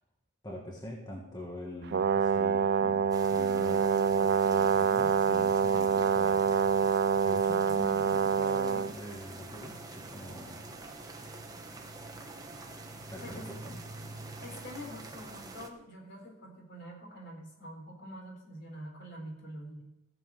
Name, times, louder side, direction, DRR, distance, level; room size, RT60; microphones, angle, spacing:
voice 1, 0.4-6.7 7.2-10.6 13.1-13.8, equal, 20° left, -2 dB, 1.8 m, -44 dB
Brass instrument, 1.9-8.9, right 6 dB, 50° right, 0.3 m, -26 dB
sound 1, 3.1-15.7, right 2 dB, 15° right, 1.2 m, -46 dB
voice 2, 13.2-13.6 14.4-19.8, equal, 50° left, 1 dB, 4.2 m, -45 dB
15.0 x 7.3 x 7.6 m, 0.91 s
head